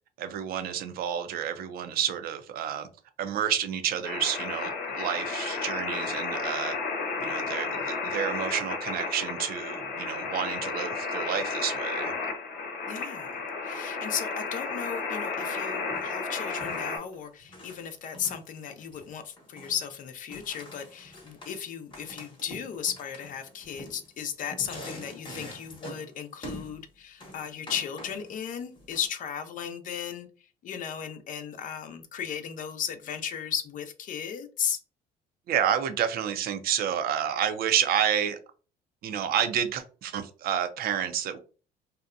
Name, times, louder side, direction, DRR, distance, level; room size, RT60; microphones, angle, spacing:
voice 1, 0.2-2.9 3.2-6.7 7.2-12.1 35.5-38.4 39.0-41.4, right 9 dB, 60° right, 0.5 m, -29 dB
sound 1, 4.0-17.0, left 4 dB, 75° left, 0.8 m, -33 dB
voice 2, 12.9-34.8, left 8 dB, 50° left, 0.5 m, -35 dB
sound 2, 15.9-16.1 16.4-17.9 18.1-19.1 19.4-19.9 20.3-21.6 21.9-26.2 26.4-26.8 27.2-28.3 28.7-29.1, equal, 30° left, 0.9 m, -45 dB
2.7 x 2.1 x 2.4 m
cardioid pair, 110°, 17 cm